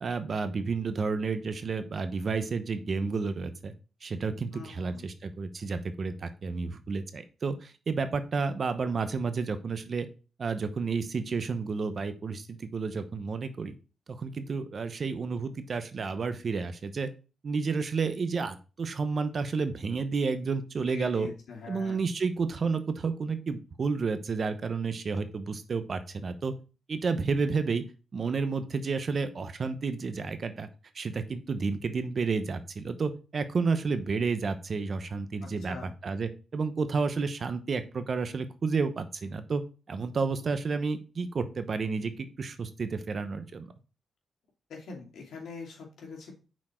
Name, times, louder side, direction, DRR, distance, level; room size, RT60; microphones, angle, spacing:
voice 1, 0.0-3.7 4.0-10.1 10.4-13.7 14.1-17.1 17.4-21.3 21.7-26.5 26.9-27.8 28.1-30.7 30.9-39.6 39.9-43.7, right 4 dB, 55° right, 10 dB, 0.9 m, -31 dB
voice 2, 4.5-5.0 20.9-22.0 35.4-35.9 44.7-46.3, left 4 dB, 80° left, 0 dB, 2.5 m, -43 dB
6.2 x 4.4 x 4.4 m, 0.34 s
cardioid pair, 75°, 0 cm